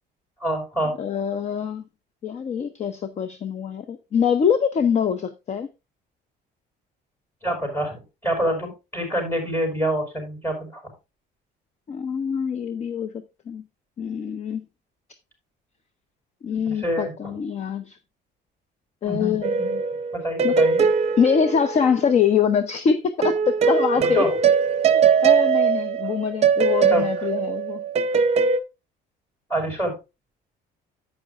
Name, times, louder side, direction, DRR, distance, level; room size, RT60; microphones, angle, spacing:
voice 1, 0.4-0.9 7.4-10.8 16.7-17.4 19.0-19.8 20.1-20.8 24.0-24.3 26.9-27.3 29.5-29.9, equal, 15° left, 4.8 m, -26 dB
voice 2, 1.0-1.8 2.2-5.7 11.9-13.1 13.5-13.6 14.0-14.6 16.4-18.0 19.0-19.5 20.4-20.5 21.2-24.2 24.9-27.8, left 7 dB, 35° left, 0.7 m, -24 dB
sound 1, 19.4-22.3 23.2-28.6, right 6 dB, 35° right, 0.7 m, -21 dB
11.0 x 8.4 x 2.4 m
cardioid pair, 135°, 19 cm